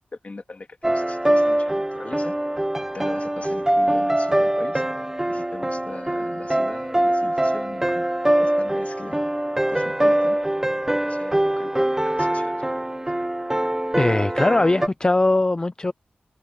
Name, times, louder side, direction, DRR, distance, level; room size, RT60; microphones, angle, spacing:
voice 1, 0.1-2.3 2.9-4.8 5.3-8.1 8.4-9.2 9.7-10.4 11.0-12.5, left 3 dB, 40° left, 2.9 m, -39 dB
sound 1, 0.8-14.9, right 1 dB, 15° right, 1.1 m, -23 dB
voice 2, 14.0-15.9, left 2 dB, 25° left, 0.4 m, -20 dB
wide cardioid pair, 105°, 3 cm